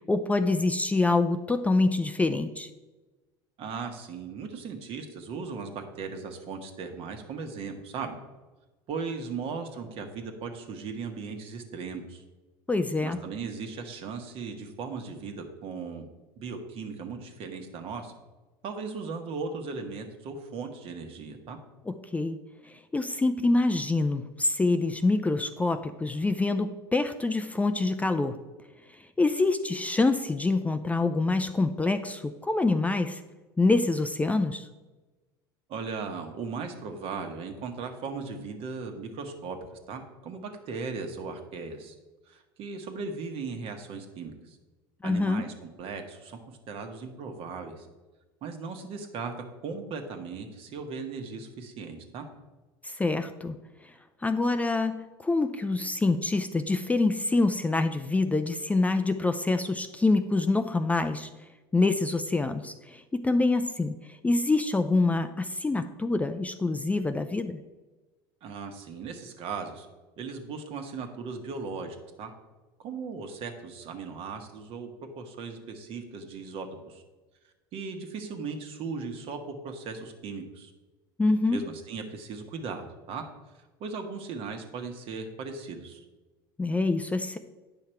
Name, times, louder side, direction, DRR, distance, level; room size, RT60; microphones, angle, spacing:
voice 1, 0.1-2.7 12.7-13.2 21.9-22.4 22.9-28.4 29.2-33.2 33.6-34.7 45.0-45.4 52.8-53.6 54.2-61.3 61.7-67.6 81.2-81.6 86.6-87.4, left 3 dB, 10° left, 9 dB, 0.4 m, -26 dB
voice 2, 3.6-8.2 8.9-12.2 13.0-16.0 16.4-18.1 18.6-21.6 35.7-41.9 42.3-44.6 45.0-46.4 46.7-47.9 48.4-49.3 49.6-52.3 68.4-69.9 70.2-72.3 72.8-74.9 75.1-77.0 77.7-80.7 81.5-83.2 83.8-86.0, right 4 dB, 55° right, 5 dB, 1.3 m, -37 dB
9.0 x 5.7 x 4.5 m, 1.2 s
supercardioid pair, 95°, 12 cm